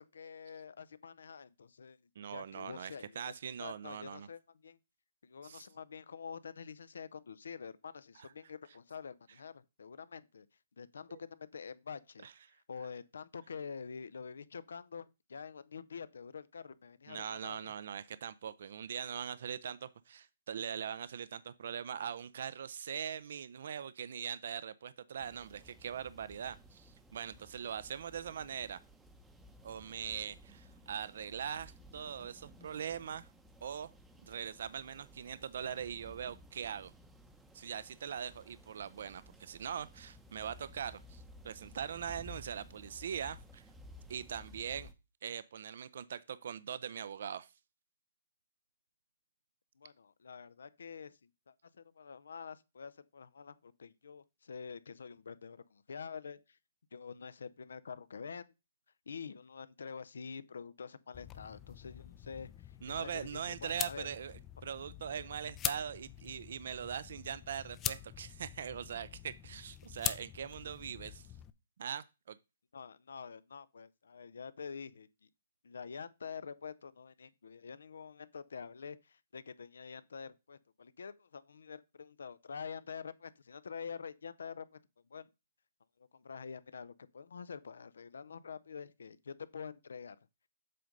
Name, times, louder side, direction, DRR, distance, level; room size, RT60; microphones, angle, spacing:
voice 1, 0.0-2.0 2.3-3.3 3.6-4.8 5.2-10.5 10.8-12.3 12.7-17.7 49.8-56.6 56.9-58.5 59.1-64.1 72.7-75.3 75.6-84.7 85.1-85.3 86.1-90.2, left 6 dB, 85° left, 0.6 m, -47 dB
voice 2, 2.2-4.3 5.4-5.6 8.2-8.3 11.1-11.2 12.2-12.3 17.1-28.8 29.6-33.3 33.6-33.9 34.2-36.9 37.5-43.6 44.1-44.9 45.2-47.5 62.8-71.3 71.8-72.4, right 8 dB, 60° right, 0.4 m, -41 dB
sound 1, 25.2-44.9, equal, 5° right, 0.7 m, -56 dB
sound 2, 61.1-71.5, left 11 dB, 15° left, 0.4 m, -43 dB
7.6 x 3.8 x 5.3 m
hypercardioid pair, 160°, 0 cm